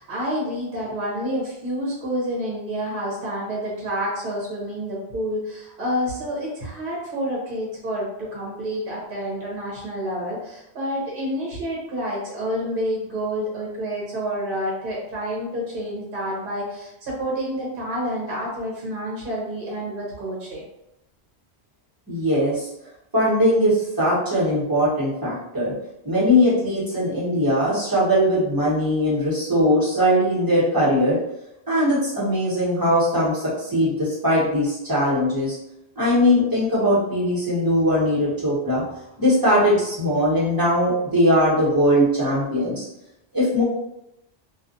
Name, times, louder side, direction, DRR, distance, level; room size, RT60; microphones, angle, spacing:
voice 1, 0.0-20.6, equal, 55° right, -4 dB, 1.0 m, -28 dB
voice 2, 22.1-22.7 23.1-25.7 26.0-31.2 31.7-35.6 36.0-38.8 39.2-42.8 43.3-43.6, equal, 20° right, -9 dB, 1.1 m, -20 dB
2.5 x 2.4 x 2.5 m, 0.85 s
omnidirectional pair, 1.1 m